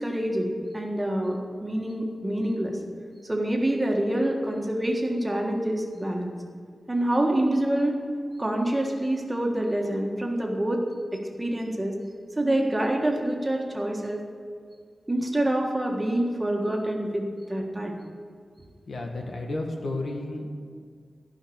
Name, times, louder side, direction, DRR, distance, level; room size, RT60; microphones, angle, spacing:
voice 1, 0.0-2.8 3.2-6.3 6.9-7.9 8.4-10.8 11.1-11.9 12.4-14.2 15.1-18.0, right 1 dB, 15° right, 0 dB, 1.6 m, -26 dB
voice 2, 18.9-20.5, left 2 dB, 75° left, 1 dB, 1.8 m, -32 dB
14.5 x 5.7 x 8.6 m, 2.1 s
wide cardioid pair, 135°, 0 cm